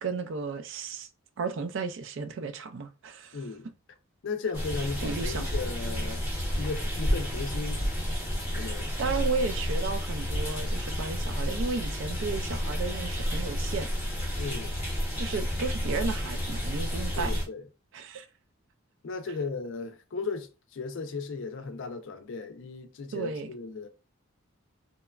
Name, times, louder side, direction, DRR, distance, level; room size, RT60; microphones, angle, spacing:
voice 1, 0.0-1.1 1.4-3.5 5.0-5.4 9.0-13.9 15.2-17.4 17.9-18.3 23.1-23.5, right 4 dB, 55° right, 0.3 m, -33 dB
voice 2, 3.3-3.7 4.2-6.3 6.5-7.8 8.5-8.9 14.4-14.8 17.2-17.6 19.0-23.9, left 4 dB, 60° left, 0.4 m, -36 dB
sound 1, 4.5-17.4, equal, 10° right, 0.9 m, -31 dB
2.9 x 2.2 x 2.3 m
head